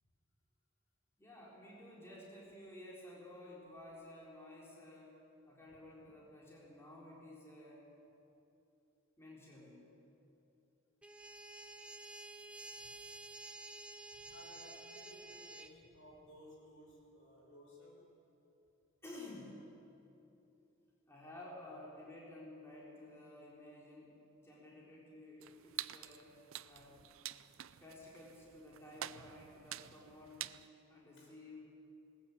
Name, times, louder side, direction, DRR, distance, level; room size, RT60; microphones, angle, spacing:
voice 1, 1.2-5.1 5.5-7.8 9.2-9.8 19.0-19.6 21.1-26.4 26.7-27.0 27.8-30.4 30.9-31.6, left 1 dB, 10° left, -5 dB, 4.0 m, -53 dB
sound 1, 11.0-15.7, right 2 dB, 5° right, 0.6 m, -51 dB
voice 2, 14.2-18.1 31.2-31.4, equal, 70° left, -1 dB, 5.9 m, -58 dB
sound 2, 25.4-30.7, right 12 dB, 80° right, 0.5 m, -48 dB
20.0 x 19.0 x 8.4 m, 2.9 s
head